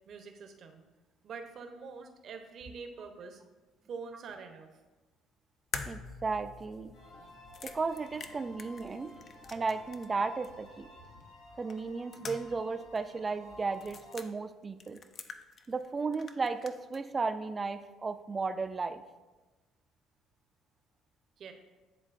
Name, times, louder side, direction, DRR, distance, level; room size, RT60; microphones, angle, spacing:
voice 1, 0.1-0.8 1.2-3.4 3.9-4.7 21.4-21.5, right 5 dB, 55° right, 6 dB, 0.7 m, -45 dB
sound 1, 5.7-10.2 10.4-10.5 11.7-12.7 12.9-13.0 13.7-14.3 14.8-15.9 16.1-17.0, left 5 dB, 50° left, 0.5 m, -45 dB
voice 2, 5.9-6.9 7.6-9.1 9.5-10.9 11.6-15.0 15.7-19.0, right 4 dB, 30° right, 9 dB, 0.4 m, -34 dB
sound 2, 6.9-14.2, left 1 dB, 80° left, 1.1 m, -53 dB
9.8 x 3.8 x 2.5 m, 1.2 s
supercardioid pair, 75°, 0 cm